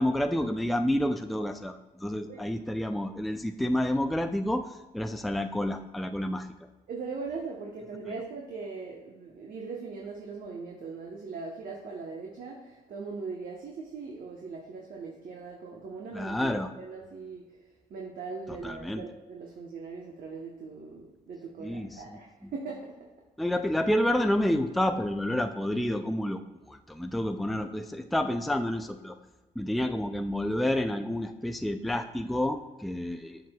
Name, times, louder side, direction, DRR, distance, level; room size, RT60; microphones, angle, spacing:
voice 1, 0.0-4.7 4.9-6.5 16.1-16.7 18.5-19.0 21.6-22.0 23.4-29.1 29.6-33.4, left 1 dB, ahead, 7 dB, 0.4 m, -29 dB
voice 2, 6.9-23.1, right 4 dB, 55° right, -1 dB, 1.0 m, -40 dB
7.2 x 5.9 x 2.3 m, 1.2 s
supercardioid pair, 60°, 17 cm